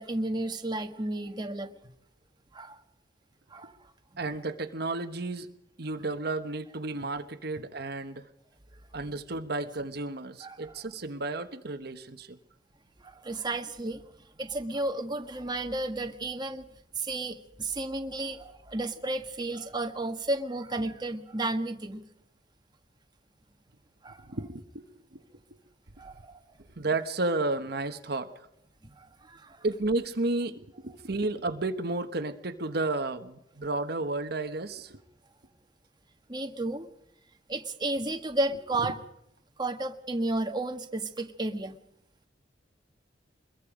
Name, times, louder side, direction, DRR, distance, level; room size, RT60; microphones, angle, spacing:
voice 1, 0.0-1.7 2.5-2.8 3.5-3.7 10.4-10.9 13.0-14.0 14.4-16.7 17.0-22.0 24.0-24.3 26.0-26.4 29.0-29.6 36.3-36.9 37.5-39.0 39.6-41.8, right 2 dB, 25° right, 5 dB, 1.5 m, -33 dB
voice 2, 4.2-5.5 5.8-8.3 8.9-12.4 24.3-24.8 25.1-25.2 26.7-28.5 29.6-35.0, right 2 dB, 60° right, 8 dB, 1.2 m, -32 dB
24.0 x 22.0 x 5.1 m, 0.77 s
head